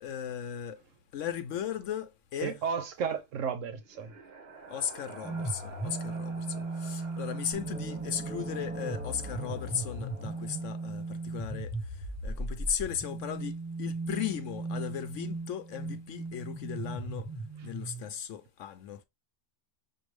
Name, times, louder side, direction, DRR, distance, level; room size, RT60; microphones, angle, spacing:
voice 1, 0.0-0.8 1.1-2.6 4.7-17.3 17.6-19.0, left 9 dB, 75° left, 0.9 m, -37 dB
voice 2, 2.4-4.1, right 6 dB, 80° right, 1.1 m, -33 dB
sound 1, 3.6-11.3, right 4 dB, 55° right, 1.2 m, -51 dB
sound 2, 5.2-18.1, right 2 dB, ahead, 0.9 m, -37 dB
sound 3, 7.5-11.3, right 3 dB, 15° right, 0.4 m, -44 dB
6.2 x 2.6 x 3.1 m
omnidirectional pair, 1.3 m